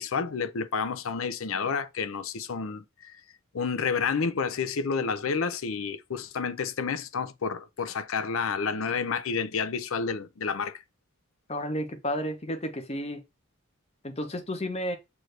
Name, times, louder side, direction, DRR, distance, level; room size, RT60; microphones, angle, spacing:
voice 1, 0.0-3.2 3.5-10.8, left 5 dB, 70° left, 0.5 m, -30 dB
voice 2, 11.5-13.2 14.0-15.0, equal, 30° left, 0.7 m, -32 dB
6.2 x 2.6 x 3.2 m
head